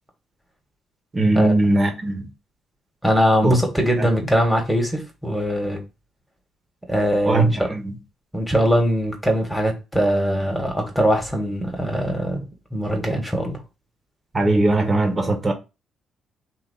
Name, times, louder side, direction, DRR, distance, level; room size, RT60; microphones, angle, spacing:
voice 1, 1.1-2.2 3.4-3.6 4.0-4.1 7.2-7.5 14.3-15.5, right 2 dB, 30° right, 1.4 m, -19 dB
voice 2, 3.0-5.8 6.9-7.7 8.3-12.4 12.7-13.6, equal, 5° right, 1.8 m, -21 dB
4.1 x 2.9 x 4.2 m
cardioid pair, 90°, 0 cm